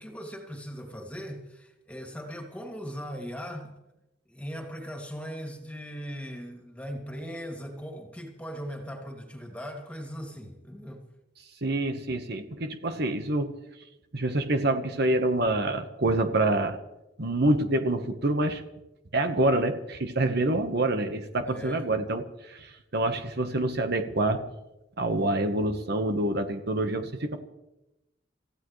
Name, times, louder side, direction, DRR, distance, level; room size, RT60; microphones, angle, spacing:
voice 1, 0.0-3.7 4.3-11.1 21.5-21.9, equal, 5° left, 2.5 m, -39 dB
voice 2, 11.6-13.6 14.1-16.8 17.2-18.6 19.1-24.5 25.0-27.4, right 2 dB, 60° right, 1.2 m, -26 dB
28.0 x 15.5 x 3.2 m
head